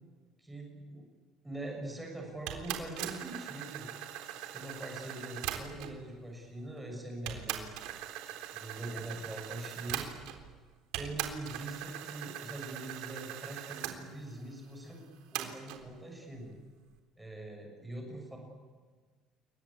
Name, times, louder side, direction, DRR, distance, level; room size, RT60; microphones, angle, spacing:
voice 1, 0.4-1.0 1.4-3.9 4.5-7.7 8.5-10.1 10.9-15.0 15.3-16.5 17.2-18.4, right 1 dB, 5° right, 1 dB, 6.6 m, -43 dB
sound 1, 2.5-6.0 6.8-6.9 7.3-10.5 10.9-14.0 15.3-15.8, right 12 dB, 85° right, 3.8 m, -40 dB
29.5 x 23.0 x 8.7 m, 1.4 s
cardioid pair, 160°, 0 cm